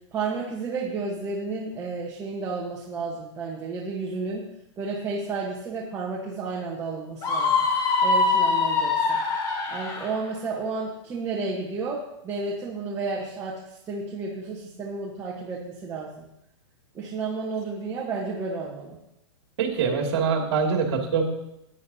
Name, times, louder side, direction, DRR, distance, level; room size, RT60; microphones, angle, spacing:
voice 1, 0.1-4.5 4.8-7.5 8.0-9.2 9.7-16.2 16.9-19.0, right 4 dB, 15° right, -3 dB, 1.2 m, -32 dB
Screaming, 7.2-10.2, left 4 dB, 25° left, 1.3 m, -23 dB
voice 2, 19.6-21.2, right 5 dB, 55° right, 1 dB, 2.5 m, -24 dB
16.0 x 9.9 x 2.8 m, 0.82 s
hypercardioid pair, 155°, 16 cm